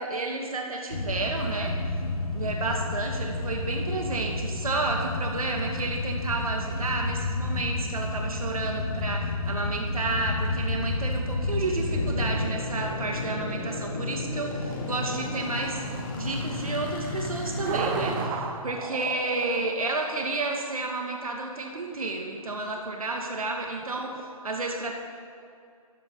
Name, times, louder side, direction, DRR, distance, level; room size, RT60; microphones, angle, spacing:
voice 1, 0.0-1.7 2.3-15.8 16.2-24.9, right 2 dB, 70° right, 1 dB, 2.4 m, -31 dB
sound 1, 0.9-12.4, left 2 dB, 80° left, 2.6 m, -30 dB
sound 2, 11.9-18.3, left 2 dB, 35° left, 2.2 m, -33 dB
sound 3, 17.6-22.5 23.8-24.3, right 6 dB, 15° right, 0.7 m, -34 dB
25.0 x 14.0 x 4.0 m, 2.4 s
figure-of-eight pair, 150°, 19 cm